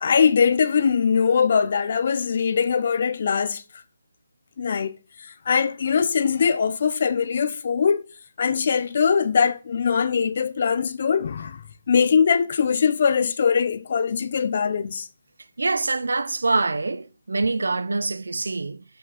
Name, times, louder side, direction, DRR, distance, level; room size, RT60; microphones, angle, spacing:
voice 1, 0.0-3.6 4.6-8.0 8.4-11.6 11.9-15.1, left 6 dB, 55° left, 0.6 m, -21 dB
voice 2, 15.6-18.8, right 3 dB, 90° right, 0.6 m, -25 dB
5.9 x 5.6 x 4.0 m
hypercardioid pair, 155°, 0 cm